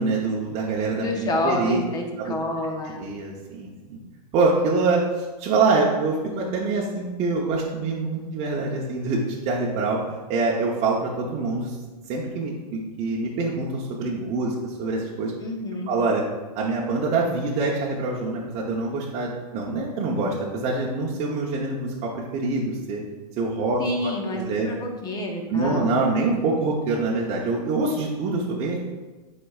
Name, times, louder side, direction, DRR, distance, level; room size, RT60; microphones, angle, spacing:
voice 1, 0.0-1.0 1.4-1.8 2.2-2.3 3.0-4.0 4.3-5.0 5.4-11.7 12.1-15.3 15.9-16.2 16.5-23.0 23.4-24.7 25.5-28.9, right 3 dB, 30° right, -3 dB, 0.9 m, -25 dB
voice 2, 0.9-3.0 15.4-15.9 23.8-25.9, left 1 dB, 20° left, 2 dB, 0.9 m, -28 dB
10.0 x 4.2 x 2.4 m, 1.2 s
hypercardioid pair, 140°, 20 cm